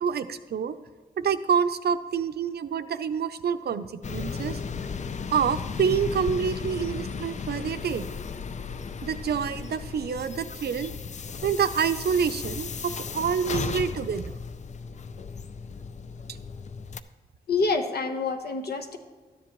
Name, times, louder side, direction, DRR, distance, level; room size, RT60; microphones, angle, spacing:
voice 1, 0.0-0.8 1.2-4.6 5.3-8.1 9.0-10.9 11.4-14.4 16.3-16.4, right 7 dB, 80° right, 12 dB, 0.6 m, -27 dB
sound 1, 4.0-17.0, left 5 dB, 45° left, 0.4 m, -35 dB
voice 2, 17.5-19.0, left 4 dB, 75° left, 6 dB, 1.1 m, -27 dB
13.0 x 10.5 x 3.0 m, 1.5 s
wide cardioid pair, 150°, 17 cm